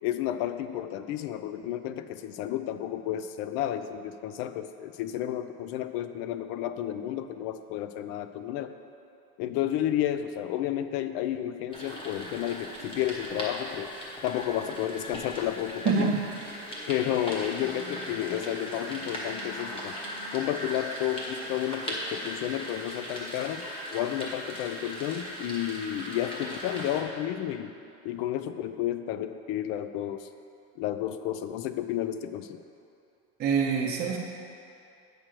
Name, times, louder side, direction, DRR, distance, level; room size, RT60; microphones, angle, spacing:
voice 1, 0.0-8.7 9.4-13.9 14.2-16.1 16.9-20.0 20.3-23.6 23.9-27.7 28.0-30.3 30.8-32.6, left 11 dB, 50° left, 10 dB, 0.4 m, -31 dB
sound 1, 11.7-27.0, equal, 15° left, 1.1 m, -38 dB
voice 2, 15.8-16.3 33.4-34.2, right 5 dB, 25° right, -3 dB, 0.6 m, -25 dB
8.8 x 6.3 x 4.5 m, 2.6 s
cardioid pair, 165°, 39 cm